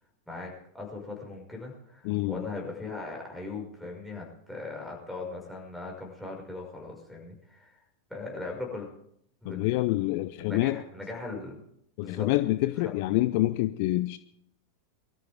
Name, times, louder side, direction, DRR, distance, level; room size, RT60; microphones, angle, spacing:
voice 1, 0.3-7.8 8.1-8.9 9.4-10.1 10.5-11.6 12.0-12.3 12.8-12.9, left 3 dB, 5° left, 5.4 m, -39 dB
voice 2, 2.0-2.4 9.4-10.8 12.0-14.2, left 18 dB, 45° left, 0.5 m, -27 dB
23.5 x 13.5 x 3.5 m
figure-of-eight pair, 90°, 0 cm